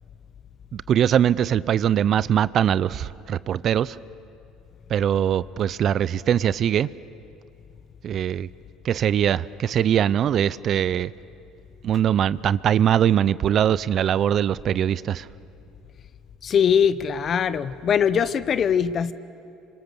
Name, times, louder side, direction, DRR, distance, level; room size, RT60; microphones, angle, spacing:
voice 1, 0.7-4.0 4.9-6.9 8.0-8.5 8.8-11.1 11.8-15.3, right 10 dB, 50° right, 19 dB, 0.5 m, -22 dB
voice 2, 16.4-19.1, left 7 dB, 45° left, 16 dB, 0.9 m, -21 dB
27.0 x 25.0 x 6.9 m, 2.7 s
supercardioid pair, 95°, 0 cm